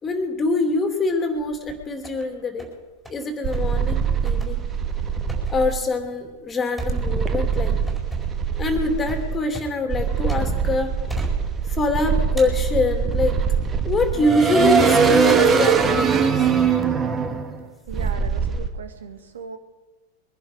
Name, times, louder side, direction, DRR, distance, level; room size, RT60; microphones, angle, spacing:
voice 1, 0.0-2.7 3.1-4.6 5.5-8.0 8.6-10.9 11.7-13.4 13.9-16.5, left 2 dB, 20° left, 5 dB, 2.8 m, -24 dB
sound 1, 1.3-2.3 2.6-3.2 3.5-3.7 4.2-10.7 11.1-11.9 12.4-13.3 13.8-14.2, right 2 dB, ahead, 4.7 m, -36 dB
sound 2, 3.4-5.7 6.8-9.4 9.9-18.7, right 6 dB, 20° right, 1.7 m, -22 dB
voice 2, 17.9-19.6, right 6 dB, 65° right, 6 dB, 2.1 m, -38 dB
23.0 x 11.0 x 5.3 m, 1.2 s
figure-of-eight pair, 90°, 0 cm